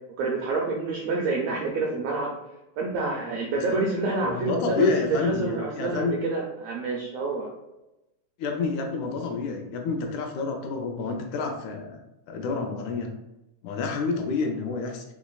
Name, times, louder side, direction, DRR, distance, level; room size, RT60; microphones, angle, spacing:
voice 1, 0.2-2.3 2.8-7.5, right 3 dB, 85° right, -1 dB, 1.4 m, -28 dB
voice 2, 4.2-6.2 8.4-12.0 12.3-13.1 13.6-15.0, left 4 dB, 80° left, 3 dB, 1.8 m, -28 dB
4.5 x 3.1 x 2.2 m, 0.94 s
omnidirectional pair, 3.4 m